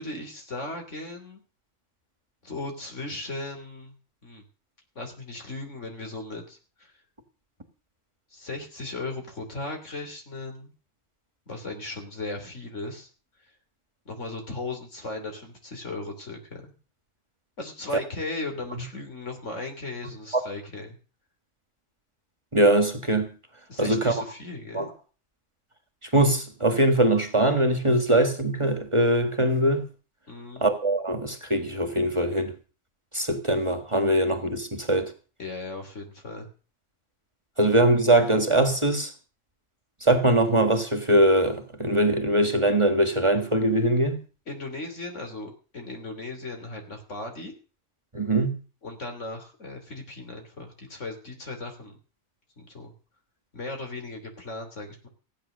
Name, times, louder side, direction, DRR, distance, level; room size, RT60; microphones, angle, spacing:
voice 1, 0.0-1.4 2.4-3.9 4.2-4.4 5.0-7.0 8.3-10.7 11.5-13.1 14.1-16.7 17.6-21.0 23.7-24.9 30.3-30.7 35.4-36.5 44.5-47.5 48.8-52.0 52.6-52.9 53.5-55.1, left 2 dB, 70° left, 3.4 m, -37 dB
voice 2, 22.5-23.3 23.8-24.2 24.7-24.9 26.1-29.8 30.6-32.5 33.1-35.1 37.6-39.1 40.0-44.2 48.1-48.5, right 1 dB, 25° right, 1.7 m, -22 dB
15.5 x 9.5 x 6.6 m
omnidirectional pair, 1.3 m